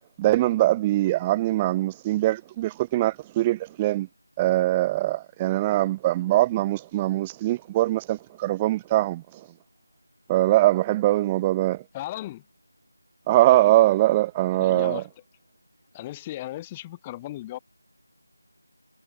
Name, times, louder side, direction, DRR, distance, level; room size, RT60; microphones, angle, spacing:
voice 1, 0.2-4.1 4.4-9.2 10.3-11.8 13.3-15.0, right 16 dB, 10° right, 0.5 m, -22 dB
voice 2, 11.9-12.4 14.5-15.1 15.9-17.6, left 15 dB, 10° left, 4.7 m, -36 dB
figure-of-eight pair, 175°, 0 cm